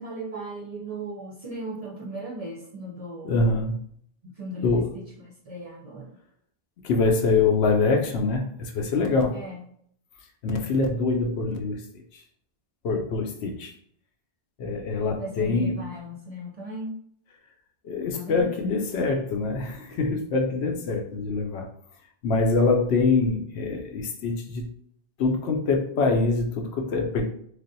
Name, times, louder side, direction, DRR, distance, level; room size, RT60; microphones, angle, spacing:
voice 1, 0.0-3.4 4.2-6.1 9.3-9.6 15.1-17.0 18.1-18.5, right 1 dB, 45° right, -3 dB, 0.5 m, -37 dB
voice 2, 3.2-3.7 4.6-5.0 6.8-9.3 10.4-11.8 12.8-13.7 14.6-15.9 17.8-21.7 22.2-24.7 25.2-27.3, left 3 dB, 75° left, 3 dB, 0.8 m, -24 dB
3.3 x 2.4 x 2.6 m, 0.65 s
omnidirectional pair, 1.1 m